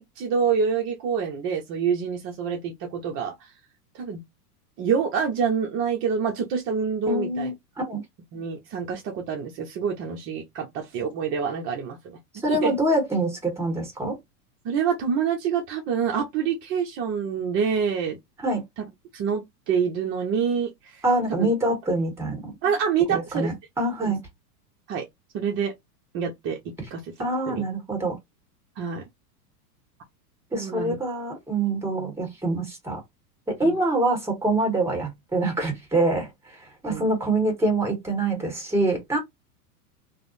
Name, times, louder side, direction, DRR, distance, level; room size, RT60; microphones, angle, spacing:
voice 1, 0.0-3.5 3.9-4.2 4.8-7.5 8.3-12.2 12.5-12.7 14.6-18.2 18.8-18.9 19.1-21.0 21.3-21.5 22.6-23.5 24.0-24.1 24.9-25.0 25.3-25.7 26.1-26.6 26.9-27.1 27.5-27.6 28.8-29.0 30.5-31.0 33.6-33.8 36.9-37.0, right 6 dB, 30° right, 0.5 m, -26 dB
voice 2, 7.1-8.0 12.4-14.2 18.4-18.6 21.0-22.5 23.1-24.2 27.2-28.1 30.5-33.0 33.5-39.2, right 2 dB, 5° right, 1.4 m, -25 dB
3.3 x 2.0 x 2.5 m
hypercardioid pair, 125°, 47 cm